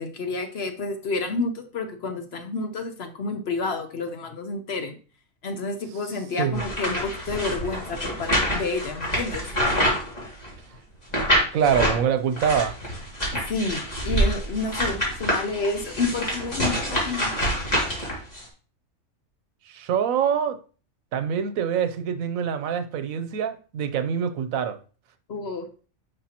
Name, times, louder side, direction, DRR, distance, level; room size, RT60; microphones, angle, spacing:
voice 1, 0.0-5.0 5.4-9.4 13.3-17.5 25.3-25.7, left 3 dB, 55° left, 1.0 m, -30 dB
sound 1, 6.5-10.6 11.1-12.0 12.4-18.4, equal, 30° left, 2.5 m, -26 dB
voice 2, 11.5-12.7 19.7-20.6 21.1-24.8, right 8 dB, 90° right, 1.1 m, -25 dB
9.8 x 5.5 x 2.9 m
omnidirectional pair, 1.4 m